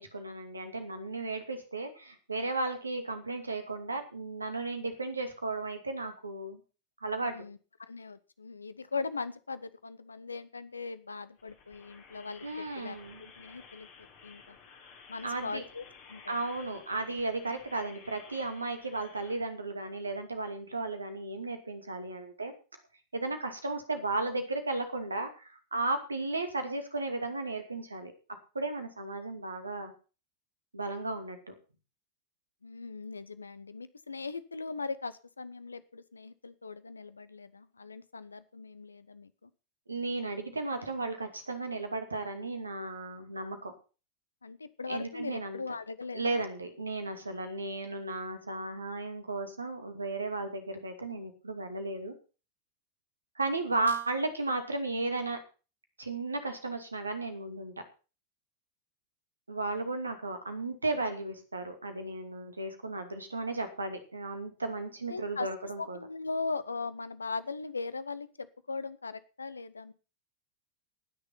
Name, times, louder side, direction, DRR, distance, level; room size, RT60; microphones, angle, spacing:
voice 1, 0.0-6.6 7.0-7.3 12.4-13.2 15.2-15.6 16.3-22.5 23.1-28.1 28.5-29.9 30.7-31.5 39.9-43.7 44.9-45.6 46.1-52.1 53.4-55.4 56.0-57.7 59.5-66.0, right 2 dB, 80° right, 7 dB, 2.4 m, -35 dB
voice 2, 7.3-13.0 13.4-13.9 14.2-14.6 15.1-15.8 16.1-16.3 16.7-16.8 32.6-39.5 44.4-46.4 65.1-65.5 65.8-69.9, left 4 dB, 75° left, 16 dB, 0.9 m, -39 dB
sound 1, 11.4-19.4, left 5 dB, 45° left, 4.0 m, -54 dB
18.5 x 6.8 x 5.8 m, 0.34 s
figure-of-eight pair, 90°, 0 cm